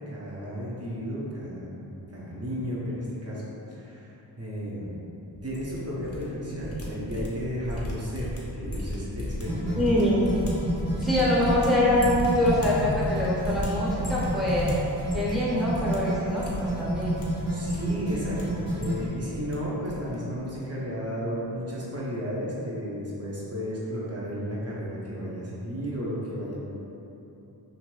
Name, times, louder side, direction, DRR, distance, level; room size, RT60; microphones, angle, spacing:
voice 1, 0.1-1.8 2.1-4.9 5.4-9.8 11.0-11.2 17.5-26.6, equal, 35° right, -6 dB, 0.8 m, -33 dB
sound 1, 5.3-6.2 6.5-15.4 15.7-16.0 16.3-17.2 17.6-18.4 18.7-19.5 19.8-20.2 20.4-20.6, left 1 dB, 35° left, 0.8 m, -36 dB
sound 2, 9.5-19.1, right 1 dB, 90° right, 1.0 m, -30 dB
voice 2, 9.8-10.2 11.0-14.7 15.1-17.1, left 1 dB, ahead, -7 dB, 0.8 m, -24 dB
2.7 x 2.5 x 3.1 m, 3.0 s
wide cardioid pair, 55°, 43 cm